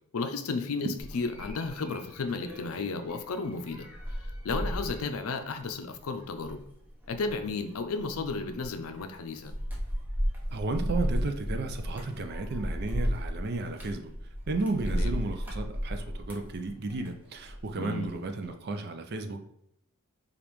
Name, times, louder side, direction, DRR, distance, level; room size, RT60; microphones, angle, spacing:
voice 1, 0.1-3.9 4.4-6.6 7.1-9.5 14.9-15.1 17.8-18.1, left 4 dB, 75° left, 8 dB, 0.5 m, -33 dB
sound 1, 1.0-17.7 18.0-18.5, equal, 10° right, 0.7 m, -35 dB
voice 2, 10.5-14.1 14.5-19.4, right 2 dB, 45° right, 6 dB, 0.4 m, -33 dB
5.1 x 2.5 x 3.0 m, 0.76 s
head